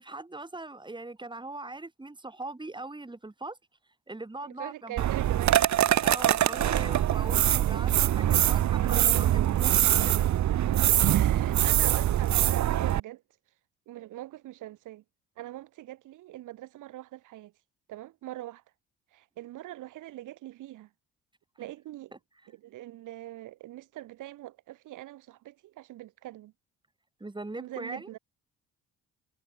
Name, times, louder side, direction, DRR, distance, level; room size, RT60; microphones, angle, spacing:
voice 1, 0.0-3.6 4.1-5.0 6.0-10.3 27.2-28.1, right 2 dB, 15° right, 6.8 m, -40 dB
voice 2, 4.4-5.7 9.8-9.9 10.8-13.2 13.9-15.0 15.4-17.5 17.9-18.6 19.1-20.9 21.6-22.1 22.5-26.5 27.6-28.2, right 15 dB, 85° right, 2.9 m, -43 dB
sound 1, 5.0-13.0, right 12 dB, 70° right, 1.6 m, -23 dB
cardioid pair, 90°, 30 cm